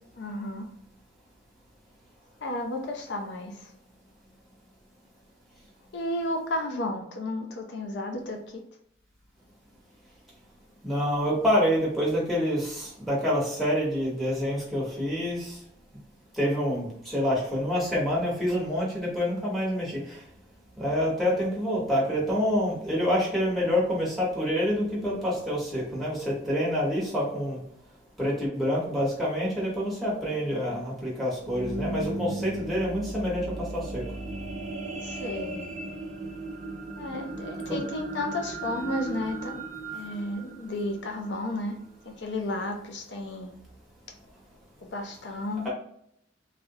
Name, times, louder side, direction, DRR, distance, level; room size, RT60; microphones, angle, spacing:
voice 1, 0.2-0.7 2.4-3.7 5.9-8.6 35.0-35.7 37.0-39.6 39.9-41.7 42.1-43.5 44.8-45.7, left 1 dB, 65° left, 3 dB, 0.5 m, -33 dB
voice 2, 10.8-15.6 16.3-20.2 20.8-27.6 28.2-34.1 37.7-37.8 45.6-45.7, equal, ahead, -7 dB, 1.3 m, -27 dB
sound 1, 31.4-41.7 42.3-42.4, right 2 dB, 40° right, 0.6 m, -36 dB
3.2 x 2.7 x 2.7 m, 0.69 s
head